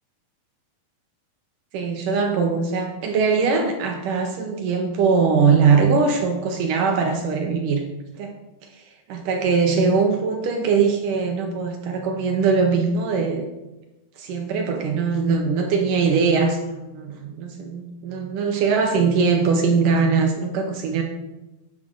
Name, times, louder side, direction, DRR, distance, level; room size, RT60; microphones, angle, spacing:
voice 1, 1.7-7.8 8.2-8.3 8.7-8.8 9.1-13.5 14.2-21.0, right 5 dB, 75° right, 3 dB, 2.0 m, -21 dB
8.6 x 7.9 x 3.8 m, 1.0 s
omnidirectional pair, 4.4 m